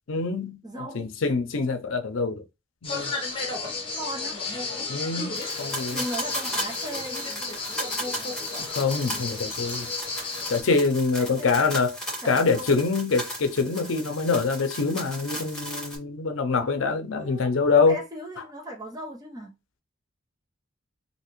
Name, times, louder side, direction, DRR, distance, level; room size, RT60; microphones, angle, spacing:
voice 1, 0.1-0.6 0.9-2.4 2.8-3.1 4.9-6.0 8.7-9.9 10.5-12.0 12.2-18.0, left 4 dB, 85° left, 0.6 m, -25 dB
voice 2, 0.6-1.1 4.0-4.4 5.9-7.3 11.2-11.7 12.2-12.8 17.1-17.5 17.8-19.5, right 1 dB, 20° right, 0.9 m, -37 dB
sound 1, 2.8-10.6, left 3 dB, 30° left, 0.9 m, -33 dB
sound 2, 5.3-16.0, equal, 5° left, 1.9 m, -36 dB
3.2 x 2.8 x 3.0 m
head